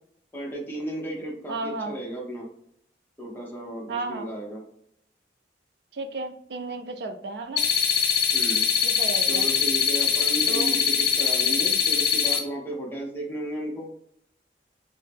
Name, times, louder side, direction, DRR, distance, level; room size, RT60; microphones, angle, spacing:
voice 1, 0.3-2.5 3.2-4.6 8.3-8.7 9.3-13.9, right 1 dB, 10° left, -3 dB, 0.7 m, -34 dB
voice 2, 1.5-1.9 3.9-4.3 5.9-7.6 8.8-9.5 10.5-10.8, right 3 dB, 65° right, 6 dB, 0.4 m, -33 dB
sound 1, 7.6-12.4, left 7 dB, 65° left, 0.5 m, -22 dB
2.7 x 2.0 x 3.3 m, 0.71 s
head